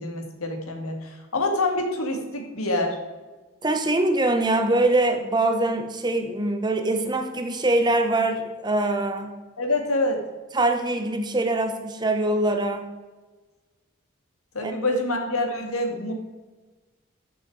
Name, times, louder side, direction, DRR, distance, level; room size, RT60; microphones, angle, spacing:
voice 1, 0.0-3.0 9.6-10.2 14.5-16.1, left 2 dB, 85° left, 3 dB, 2.1 m, -26 dB
voice 2, 3.6-9.3 10.5-12.9 14.6-14.7, right 2 dB, 20° right, 6 dB, 1.0 m, -23 dB
13.5 x 6.9 x 4.8 m, 1.3 s
head